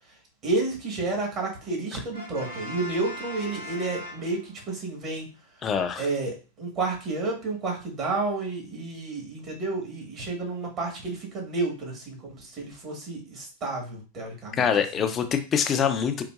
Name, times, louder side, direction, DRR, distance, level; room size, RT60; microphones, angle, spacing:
voice 1, 0.4-5.3 6.0-14.7, right 3 dB, 35° right, 0 dB, 1.4 m, -31 dB
Brass instrument, 2.1-4.8, left 1 dB, 85° right, 1.2 m, -39 dB
voice 2, 5.6-6.1 14.6-16.2, left 7 dB, 30° left, 7 dB, 0.5 m, -24 dB
3.9 x 2.6 x 2.4 m, 0.34 s
figure-of-eight pair, 95°, 0 cm